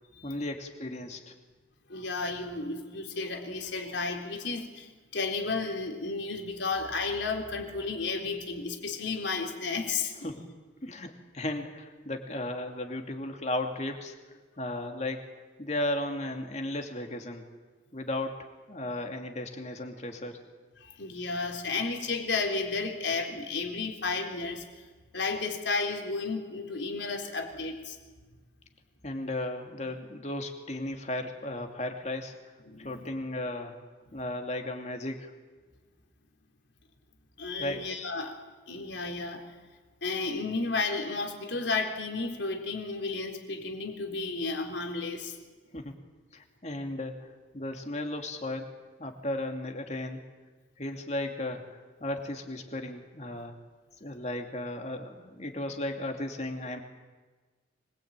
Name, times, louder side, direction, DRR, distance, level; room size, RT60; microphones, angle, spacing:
voice 1, 0.2-1.3 10.2-10.4 10.8-14.1 14.6-15.2 15.6-17.5 17.9-20.4 29.0-32.4 32.8-33.8 34.1-35.3 37.6-37.8 45.7-45.9 46.3-48.7 49.0-50.2 50.8-53.6 54.0-56.8, left 1 dB, 35° left, 4 dB, 2.8 m, -35 dB
voice 2, 1.9-10.3 20.8-24.7 25.1-28.0 32.7-33.1 37.4-38.4 38.7-39.4 40.0-45.4, left 4 dB, 75° left, 3 dB, 3.8 m, -33 dB
25.0 x 21.5 x 9.1 m, 1.3 s
head